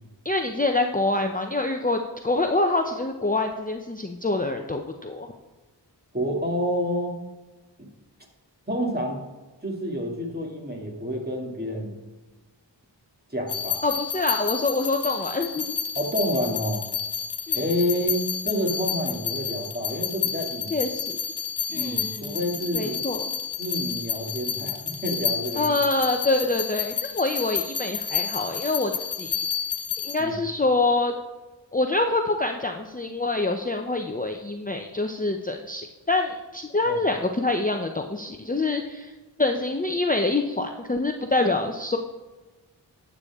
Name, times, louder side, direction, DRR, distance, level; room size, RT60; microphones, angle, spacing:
voice 1, 0.2-5.3 13.8-15.7 17.5-17.6 20.7-21.2 21.7-22.4 22.7-23.3 25.6-29.5 30.0-31.1 31.7-39.1 39.4-42.0, left 2 dB, 20° left, 4 dB, 0.7 m, -26 dB
voice 2, 6.1-7.2 7.8-7.9 8.7-9.2 9.6-12.0 13.3-13.8 15.9-16.9 17.5-20.7 21.7-23.0 23.6-25.8 30.2-30.4 36.9-37.0, equal, 20° right, 0 dB, 2.5 m, -28 dB
sound 1, 13.5-30.2, left 8 dB, 60° left, 1.4 m, -30 dB
12.5 x 8.4 x 3.6 m, 1.2 s
wide cardioid pair, 45°, 44 cm